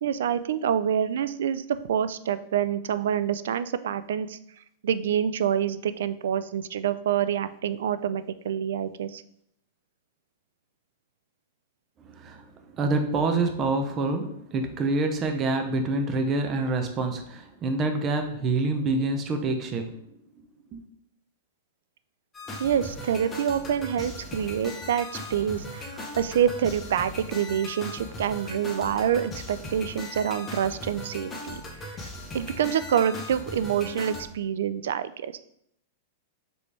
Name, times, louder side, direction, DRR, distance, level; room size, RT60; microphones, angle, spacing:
voice 1, 0.0-4.4 4.8-9.2 22.6-32.0 32.3-35.4, right 9 dB, 80° right, 13 dB, 0.3 m, -27 dB
voice 2, 12.0-20.0 20.7-20.8, right 3 dB, 30° right, 5 dB, 0.7 m, -27 dB
sound 1, 22.3-34.3, left 1 dB, 15° left, 0.9 m, -38 dB
5.2 x 3.1 x 3.3 m, 0.71 s
hypercardioid pair, 135°, 0 cm